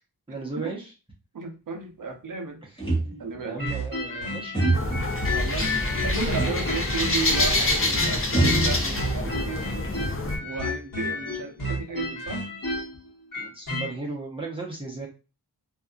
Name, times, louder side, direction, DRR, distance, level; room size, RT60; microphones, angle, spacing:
voice 1, 0.3-0.9 3.4-4.6 13.4-15.1, right 3 dB, 15° right, -5 dB, 0.8 m, -35 dB
voice 2, 1.3-2.6 3.2-3.6 5.3-10.0 10.4-12.4, right 4 dB, 55° right, 3 dB, 0.7 m, -34 dB
sound 1, 2.8-3.5 4.5-5.1 6.4-6.8 7.1-7.2 8.3-9.4 9.8-10.6, right 2 dB, 15° left, 1.1 m, -27 dB
sound 2, 3.6-7.6 7.9-13.9, left 1 dB, 55° left, 1.3 m, -31 dB
sound 3, 4.7-10.4, left 2 dB, 35° left, 0.7 m, -26 dB
2.7 x 2.4 x 2.3 m, 0.32 s
wide cardioid pair, 85°, 38 cm